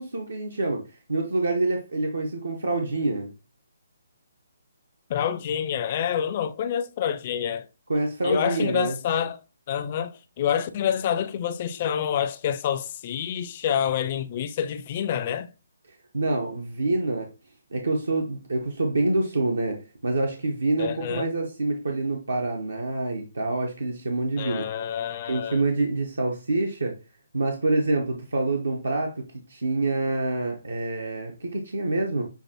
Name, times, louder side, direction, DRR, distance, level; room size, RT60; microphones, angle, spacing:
voice 1, 0.0-3.3 7.9-9.0 16.1-17.3 17.7-24.7 25.3-26.9 27.3-29.2 29.5-32.2, right 2 dB, 80° right, 0.9 m, -26 dB
voice 2, 5.1-7.6 8.2-9.4 9.7-15.5 20.8-21.3 24.4-25.6, left 9 dB, 40° left, 0.4 m, -27 dB
6.8 x 2.6 x 2.9 m
figure-of-eight pair, 140°, 0 cm